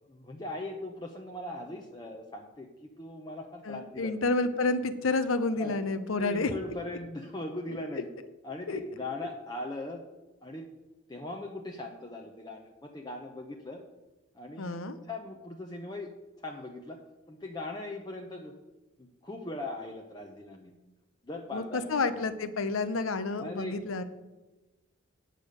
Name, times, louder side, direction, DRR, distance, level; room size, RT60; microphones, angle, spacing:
voice 1, 0.0-4.1 5.6-5.8 6.2-8.1 8.4-10.0 10.4-10.6 11.1-13.8 14.3-16.1 16.4-17.0 17.3-18.5 19.0-20.8 21.2-22.2 23.4-24.0, left 2 dB, 20° left, 1 dB, 0.7 m, -40 dB
voice 2, 3.7-6.5 8.7-8.8 14.6-15.0 21.5-24.0, left 3 dB, 90° left, 11 dB, 0.8 m, -29 dB
9.1 x 6.8 x 6.4 m, 1.1 s
head